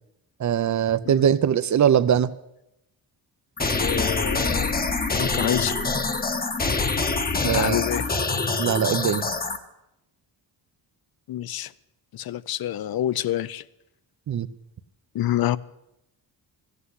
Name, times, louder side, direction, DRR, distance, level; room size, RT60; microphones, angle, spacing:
voice 1, 0.4-2.3 7.4-7.8 8.6-9.2 14.3-14.5, right 9 dB, 40° right, 15 dB, 0.7 m, -21 dB
sound 1, 3.6-9.6, left 3 dB, 20° left, 1.0 m, -25 dB
voice 2, 3.8-4.8 5.1-5.8 7.5-8.1 11.3-11.7 12.1-13.6 15.1-15.6, left 13 dB, 55° left, 19 dB, 0.6 m, -27 dB
14.5 x 8.3 x 9.7 m, 0.88 s
cardioid pair, 130°, 43 cm